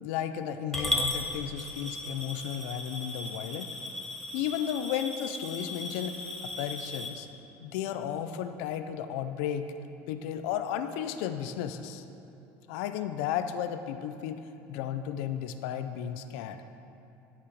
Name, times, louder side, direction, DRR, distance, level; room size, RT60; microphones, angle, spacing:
voice 1, 0.0-3.7 4.3-6.2 6.4-7.3 7.6-9.7 10.1-12.0 12.7-16.6, left 9 dB, 85° left, 9 dB, 0.4 m, -34 dB
Coin (dropping) / Glass, 0.7-7.1, left 1 dB, 5° left, 0.7 m, -36 dB
11.5 x 4.9 x 5.1 m, 2.8 s
cardioid pair, 175°, 7 cm